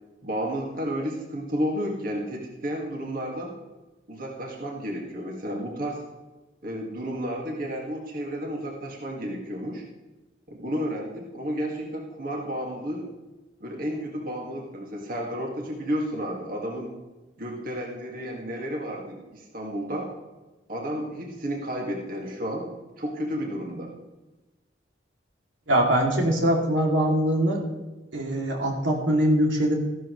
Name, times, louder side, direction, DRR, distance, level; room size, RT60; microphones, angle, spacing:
voice 1, 0.2-3.5 4.1-6.0 6.6-9.8 10.5-13.1 13.6-16.9 17.4-20.1 20.7-22.7 23.0-23.9, equal, 50° right, -1 dB, 2.1 m, -32 dB
voice 2, 25.7-27.6 28.1-29.7, right 1 dB, 85° right, 0 dB, 2.7 m, -22 dB
14.5 x 12.5 x 3.2 m, 1.1 s
head